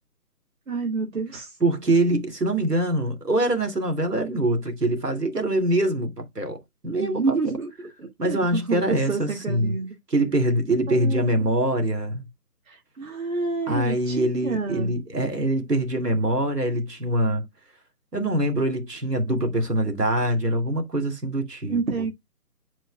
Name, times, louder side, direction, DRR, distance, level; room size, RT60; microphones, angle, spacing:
voice 1, 0.7-1.5 6.9-9.9 10.9-11.3 12.7-14.9 21.7-22.1, right 4 dB, 60° right, 2.2 m, -29 dB
voice 2, 1.6-7.4 8.2-9.8 10.1-12.3 13.7-17.5 18.1-22.0, right 1 dB, 80° right, 2.7 m, -24 dB
10.5 x 4.5 x 2.3 m
figure-of-eight pair, 145°, 47 cm